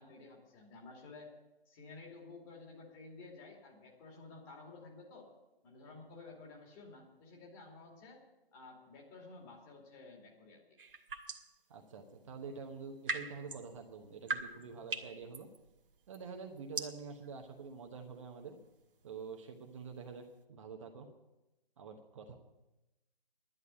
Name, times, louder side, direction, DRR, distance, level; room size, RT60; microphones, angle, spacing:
voice 1, 0.0-1.3 1.7-5.3 5.6-8.2 8.5-10.6, left 3 dB, 20° left, -1 dB, 2.7 m, -53 dB
sound 1, 10.8-11.6 12.7-20.4, right 3 dB, 65° right, 1.5 m, -44 dB
voice 2, 11.7-15.5 16.1-18.6 19.0-21.1 21.8-22.3, right 5 dB, 30° right, 3 dB, 1.1 m, -47 dB
11.0 x 9.5 x 8.7 m, 1.0 s
figure-of-eight pair, 150°, 30 cm